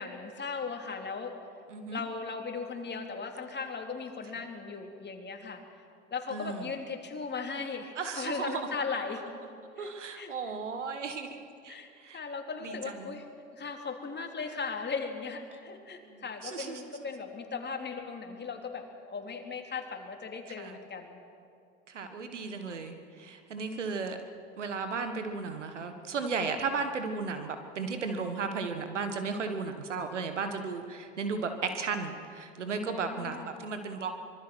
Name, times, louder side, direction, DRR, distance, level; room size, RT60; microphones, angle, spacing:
voice 1, 0.0-1.3 1.9-5.6 6.1-9.2 9.8-9.9 10.1-10.3 11.7-11.9 12.1-13.3 13.5-21.2 32.8-33.6, left 5 dB, 30° left, 4 dB, 3.1 m, -37 dB
voice 2, 1.7-2.0 6.3-6.7 8.0-8.7 9.8-12.2 12.6-13.1 16.0-16.9 20.5-20.8 21.9-24.2 24.6-34.2, right 4 dB, 85° right, 7 dB, 1.6 m, -35 dB
25.0 x 22.0 x 6.3 m, 2.4 s
figure-of-eight pair, 65°, 35 cm